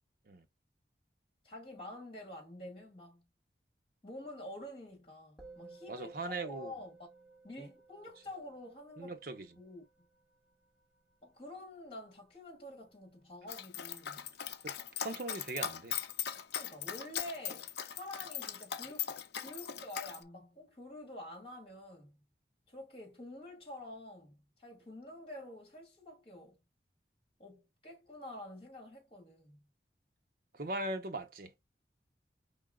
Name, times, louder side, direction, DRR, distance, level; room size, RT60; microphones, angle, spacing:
voice 1, 1.4-3.3 4.0-7.1 7.4-9.2 9.6-9.8 11.2-14.3 16.5-19.1 19.4-22.2 22.7-26.6 27.4-29.6, left 1 dB, 30° left, 2.1 m, -48 dB
Musical instrument, 5.4-14.9, right 3 dB, 5° right, 1.9 m, -59 dB
voice 2, 5.9-6.7 7.6-7.7 9.0-9.5 14.6-14.8 15.0-16.0 30.5-31.5, right 2 dB, 55° right, 0.8 m, -39 dB
Dog, 13.5-20.2, left 9 dB, 70° left, 0.5 m, -39 dB
4.6 x 3.6 x 2.3 m
head